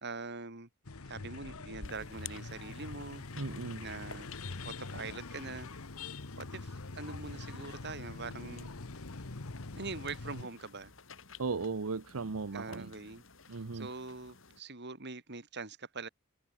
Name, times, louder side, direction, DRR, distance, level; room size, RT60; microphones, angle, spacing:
voice 1, 0.0-0.7 1.1-3.2 3.8-4.3 4.6-5.7 6.4-8.7 9.8-10.9 12.5-13.2 13.7-16.1, right 3 dB, 50° right, 2.8 m, -43 dB
sound 1, 0.8-10.4, left 3 dB, 80° left, 1.2 m, -44 dB
sound 2, 1.8-14.6, left 6 dB, 65° left, 4.4 m, -54 dB
voice 2, 3.4-3.8 11.4-12.9 13.5-13.9, right 4 dB, 75° right, 0.8 m, -36 dB
head